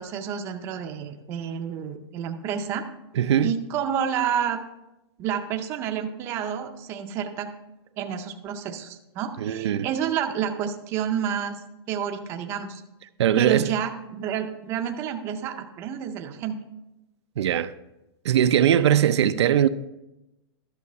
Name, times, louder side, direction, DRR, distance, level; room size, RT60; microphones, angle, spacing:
voice 1, 0.0-2.8 3.4-4.6 5.2-7.5 8.0-12.8 13.4-16.6, right 8 dB, 20° right, 0.5 m, -29 dB
voice 2, 3.1-3.5 9.4-9.9 13.2-13.7 17.4-17.7 18.2-19.7, right 10 dB, 80° right, 0.5 m, -20 dB
11.5 x 6.3 x 4.2 m
supercardioid pair, 175°, 14 cm